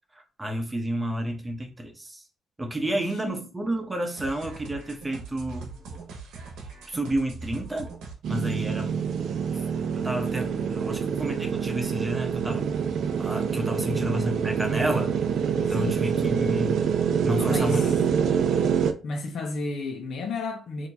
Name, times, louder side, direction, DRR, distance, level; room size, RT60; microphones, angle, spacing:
voice 1, 0.4-2.2 2.6-5.7 6.9-7.9 8.3-9.0 9.9-12.7 13.2-15.2 15.6-16.8 17.2-17.9 18.3-18.4, equal, 15° right, 1.0 m, -30 dB
voice 2, 2.8-3.5 13.8-14.0 15.7-16.3 17.4-18.0 19.0-20.9, left 4 dB, 65° left, 0.9 m, -33 dB
sound 1, 4.2-8.1, right 4 dB, 85° right, 1.0 m, -41 dB
sound 2, 8.2-18.9, right 7 dB, 70° right, 0.5 m, -26 dB
4.3 x 2.8 x 2.8 m
cardioid pair, 90°, 0 cm